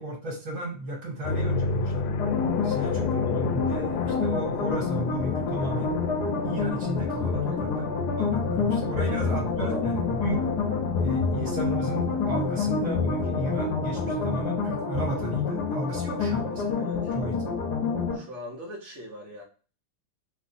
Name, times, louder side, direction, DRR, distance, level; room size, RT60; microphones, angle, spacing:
voice 1, 0.0-2.2 2.6-5.9 6.4-10.4 10.9-16.8 17.1-17.4, right 2 dB, 45° right, -1 dB, 1.2 m, -34 dB
sound 1, 1.2-14.5, left 3 dB, 85° left, 1.5 m, -33 dB
sound 2, 2.2-18.2, left 5 dB, 65° left, 1.1 m, -28 dB
voice 2, 9.0-9.3 9.6-9.8 16.8-17.1 18.1-19.4, right 1 dB, 80° right, -3 dB, 0.6 m, -40 dB
3.1 x 3.1 x 2.5 m, 0.37 s
omnidirectional pair, 2.3 m